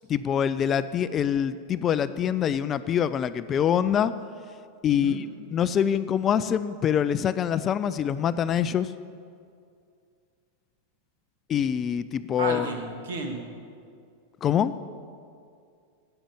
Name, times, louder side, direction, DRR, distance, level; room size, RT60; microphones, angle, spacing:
voice 1, 0.1-4.1 4.8-8.9 11.5-12.7 14.4-14.7, left 9 dB, 25° left, 14 dB, 0.4 m, -25 dB
voice 2, 4.9-5.2 12.4-13.4, right 3 dB, 60° right, 5 dB, 1.7 m, -32 dB
10.0 x 8.9 x 8.5 m, 2.3 s
figure-of-eight pair, 90°, 0 cm